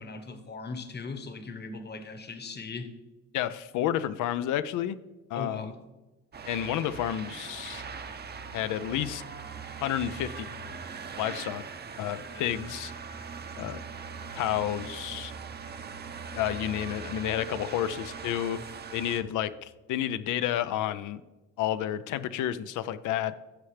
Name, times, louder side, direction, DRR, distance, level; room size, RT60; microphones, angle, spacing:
voice 1, 0.0-2.9 5.3-5.7, left 4 dB, 35° left, 8 dB, 1.1 m, -39 dB
voice 2, 3.3-5.0 5.3-5.7 6.5-7.8 8.5-9.2 9.8-10.5 11.2-11.6 12.0-12.9 13.6-13.8 14.3-15.3 16.3-18.6 18.9-21.2 21.6-23.4, left 11 dB, 80° left, 13 dB, 0.5 m, -30 dB
sound 1, 6.3-19.2, right 5 dB, 35° right, 0.6 m, -41 dB
14.0 x 5.7 x 3.3 m, 1.1 s
cardioid pair, 90°, 30 cm